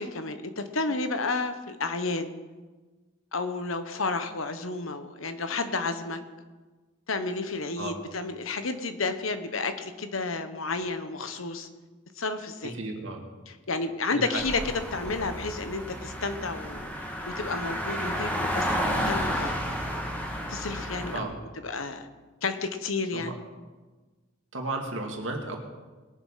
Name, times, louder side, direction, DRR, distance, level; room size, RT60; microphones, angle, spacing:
voice 1, 0.0-2.3 3.3-6.2 7.1-11.7 12.2-12.8 13.5-16.9 17.2-19.5 20.5-21.3 21.6-22.1 22.4-23.4, left 3 dB, 80° left, 9 dB, 1.2 m, -31 dB
voice 2, 12.7-13.2 14.1-14.4 21.1-21.3 23.1-23.3 24.5-25.6, right 2 dB, 65° right, 1 dB, 2.4 m, -33 dB
sound 1, 14.4-21.2, equal, 10° left, 1.7 m, -31 dB
20.5 x 7.5 x 5.7 m, 1.3 s
head